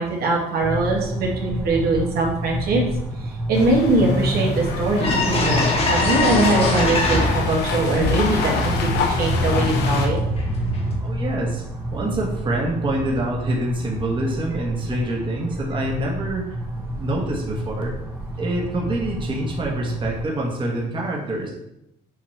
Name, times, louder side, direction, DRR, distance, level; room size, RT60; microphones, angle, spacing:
voice 1, 0.0-2.8 3.2-10.2, right 2 dB, 65° right, -1 dB, 1.5 m, -22 dB
sound 1, 0.6-20.3, right 1 dB, 10° right, 1.1 m, -30 dB
sound 2, 3.5-10.1, left 4 dB, 80° left, 1.0 m, -26 dB
sound 3, 4.6-4.7 5.0-7.6 8.0-11.0, left 2 dB, 35° left, 1.2 m, -23 dB
voice 2, 11.0-11.6 11.9-17.9 18.4-21.5, right 1 dB, 30° right, -2 dB, 1.4 m, -26 dB
7.3 x 3.0 x 4.4 m, 0.83 s
cardioid pair, 110°, 17 cm